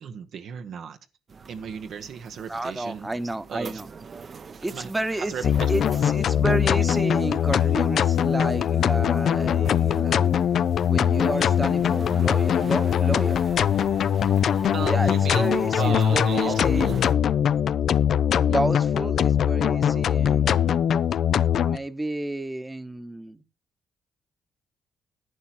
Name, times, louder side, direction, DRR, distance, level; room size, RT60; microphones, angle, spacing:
voice 1, 0.0-1.0 1.5-3.1 3.5-3.8 4.6-5.7 14.4-17.0, right 7 dB, 70° right, 1.0 m, -35 dB
sound 1, 1.3-17.1, right 5 dB, 45° right, 0.8 m, -43 dB
voice 2, 2.5-3.9 4.6-10.3 10.9-13.3 14.8-16.9 18.5-20.8 21.6-23.4, right 2 dB, 15° right, 1.0 m, -31 dB
sound 2, 5.4-21.8, left 9 dB, 65° left, 0.5 m, -22 dB
11.0 x 8.9 x 4.4 m
cardioid pair, 90°, 0 cm